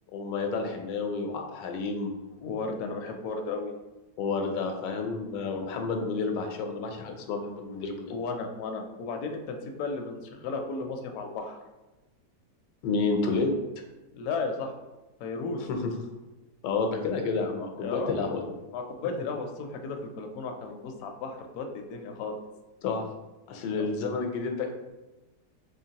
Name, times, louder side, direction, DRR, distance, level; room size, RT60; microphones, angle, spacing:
voice 1, 0.1-2.1 4.2-8.1 12.8-13.5 15.6-15.9 16.6-18.5 22.8-23.1 23.5-24.7, left 4 dB, 90° left, 4 dB, 1.3 m, -30 dB
voice 2, 2.4-3.8 8.1-11.6 14.1-14.8 15.2-15.6 17.8-18.3 18.7-22.3 23.8-23.9, left 4 dB, 70° left, 4 dB, 0.9 m, -34 dB
3.7 x 3.1 x 2.8 m, 1.1 s
omnidirectional pair, 1.9 m